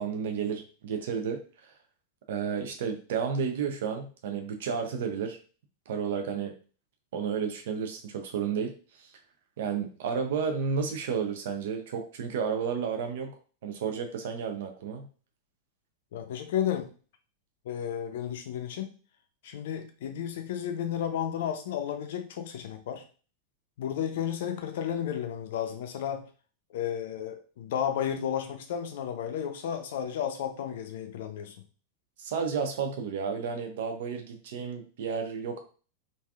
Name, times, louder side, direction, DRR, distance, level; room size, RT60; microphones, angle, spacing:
voice 1, 0.0-1.8 2.3-5.4 5.9-6.5 7.1-8.7 9.0-9.1 9.6-13.3 13.6-15.1 32.2-35.6, right 6 dB, 55° right, 4 dB, 0.5 m, -32 dB
voice 2, 16.1-16.9 17.7-18.9 19.4-23.0 23.8-26.2 26.7-31.6, left 9 dB, 55° left, 6 dB, 0.5 m, -32 dB
3.3 x 2.6 x 2.3 m, 0.38 s
figure-of-eight pair, 90°, 0 cm